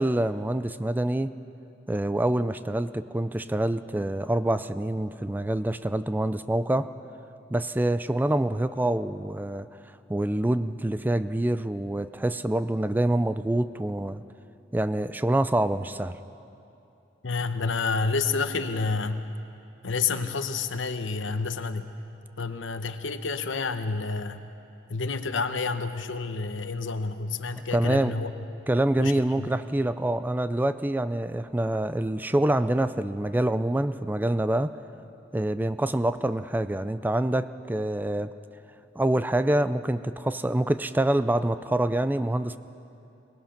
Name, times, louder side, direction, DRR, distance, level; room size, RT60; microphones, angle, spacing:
voice 1, 0.0-1.3 1.9-6.9 7.5-9.7 10.1-14.2 14.7-16.2 27.7-28.1 28.7-34.7 35.3-38.3 39.0-42.6, right 1 dB, 10° right, 12 dB, 0.4 m, -26 dB
voice 2, 17.2-19.2 19.8-21.9 22.4-24.4 24.9-28.3 29.0-29.5, left 4 dB, 80° left, 9 dB, 1.0 m, -29 dB
22.0 x 20.0 x 5.8 m, 2.7 s
head